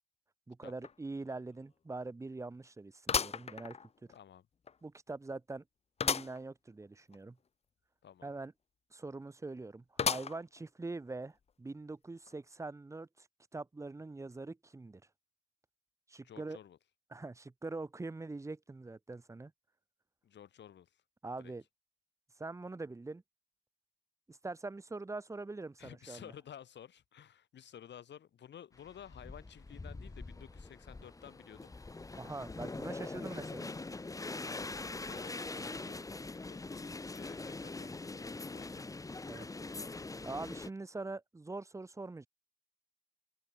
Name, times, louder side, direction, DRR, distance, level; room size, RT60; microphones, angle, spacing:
voice 1, 0.5-3.8 4.8-5.6 6.0-7.4 8.2-8.5 8.9-13.3 13.5-15.0 16.1-16.6 17.1-19.5 21.2-21.6 22.4-23.2 24.3-26.3 32.2-33.7 39.2-39.5 40.2-42.3, right 3 dB, 15° right, 0.8 m, -43 dB
sound 1, 0.8-0.9 1.4-1.5 3.1-4.2 4.7-4.8 6.0-6.4 6.8-6.9 7.1-7.2 10.0-10.6 11.2-11.3 12.3-12.4, left 6 dB, 30° left, 0.7 m, -34 dB
voice 2, 4.1-4.5 8.0-8.3 16.2-16.8 20.2-21.0 21.4-21.5 25.8-31.7 34.5-34.7 35.0-36.1 36.3-38.9 39.4-39.8, left 9 dB, 65° left, 7.3 m, -54 dB
sound 2, 28.8-40.7, left 3 dB, 15° left, 1.1 m, -43 dB
open air
cardioid pair, 90°, 20 cm